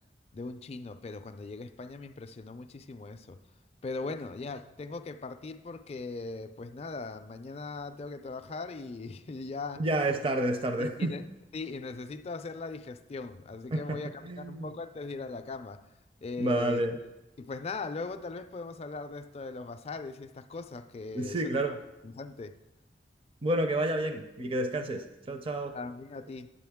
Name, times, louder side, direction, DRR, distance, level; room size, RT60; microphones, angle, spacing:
voice 1, 0.3-3.4 3.8-10.1 10.8-11.2 11.5-15.8 16.2-16.8 17.4-21.6 22.0-22.6 25.7-26.5, left 3 dB, 35° left, 0.4 m, -39 dB
voice 2, 9.8-11.1 13.7-14.0 14.2-14.7 16.4-17.0 21.1-21.8 23.4-25.8, right 1 dB, 30° right, 0.5 m, -30 dB
9.8 x 7.5 x 3.5 m
head